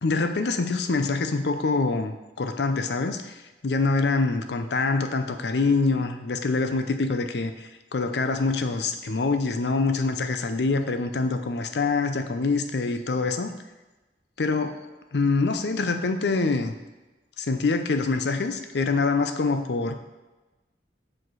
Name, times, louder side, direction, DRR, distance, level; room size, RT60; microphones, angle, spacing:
voice 1, 0.0-2.1 2.4-3.4 3.6-13.5 14.4-14.8 15.1-16.7 17.4-19.9, left 3 dB, 70° left, 8 dB, 0.6 m, -25 dB
5.9 x 4.9 x 4.7 m, 1.1 s
head